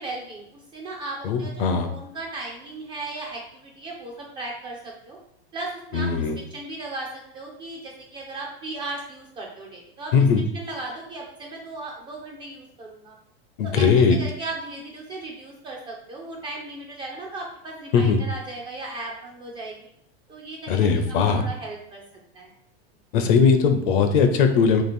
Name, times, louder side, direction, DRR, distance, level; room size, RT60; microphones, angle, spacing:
voice 1, 0.0-5.2 5.5-10.2 10.5-13.1 13.6-19.8 20.3-22.0 22.3-22.5, right 2 dB, 15° right, -1 dB, 0.3 m, -36 dB
voice 2, 1.2-1.9 5.9-6.4 10.1-10.4 13.6-14.2 17.9-18.2 20.7-21.4 23.1-24.8, left 5 dB, 55° left, 7 dB, 0.6 m, -19 dB
3.0 x 2.9 x 4.2 m, 0.76 s
supercardioid pair, 145°, 32 cm